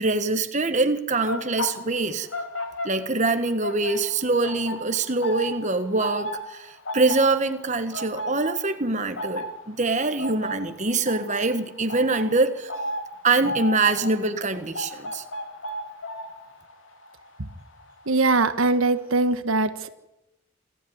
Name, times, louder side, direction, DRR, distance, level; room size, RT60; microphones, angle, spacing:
voice 1, 0.0-2.3 2.8-12.7 13.2-15.2, right 3 dB, 35° right, 1.4 m, -24 dB
sound 1, 1.1-3.3 3.6-18.5 18.7-19.1, left 1 dB, 70° left, 3.4 m, -35 dB
voice 2, 18.1-19.9, right 3 dB, 80° right, 1.4 m, -22 dB
27.0 x 14.0 x 9.5 m
head